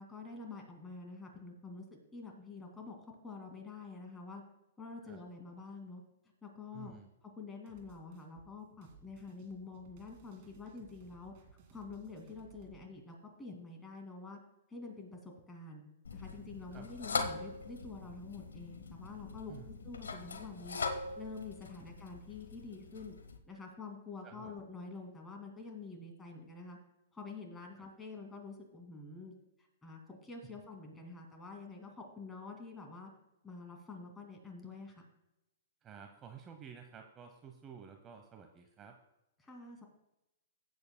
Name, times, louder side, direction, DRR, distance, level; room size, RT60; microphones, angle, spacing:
voice 1, 0.0-1.8 2.1-4.4 4.8-6.0 6.4-6.9 7.4-11.3 11.7-14.4 14.7-15.8 16.1-20.8 21.2-23.2 23.5-26.8 27.1-29.3 29.8-33.1 33.4-35.0 39.4-39.8, left 4 dB, 10° left, 2 dB, 2.3 m, -47 dB
voice 2, 6.7-7.1 16.7-16.9 19.5-19.8 24.2-24.5 27.8-27.9 35.8-38.9, right 7 dB, 25° right, 5 dB, 0.9 m, -52 dB
sound 1, 7.7-12.8, right 5 dB, 50° right, 2.4 m, -61 dB
sound 2, 16.0-23.4, left 4 dB, 85° left, 1.0 m, -42 dB
16.5 x 8.1 x 2.2 m, 0.90 s
hypercardioid pair, 125°, 0 cm